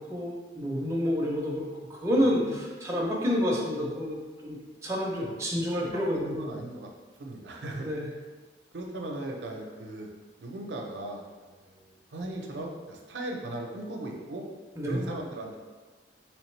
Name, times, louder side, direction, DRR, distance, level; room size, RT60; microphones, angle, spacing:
voice 1, 0.1-6.3 7.8-8.1 14.8-15.0, equal, 15° right, -3 dB, 0.5 m, -29 dB
voice 2, 2.2-2.6 5.2-6.9 7.2-7.9 8.7-10.1 10.4-14.4 14.9-15.6, right 1 dB, 85° right, 1 dB, 0.5 m, -38 dB
3.5 x 3.1 x 3.1 m, 1.4 s
head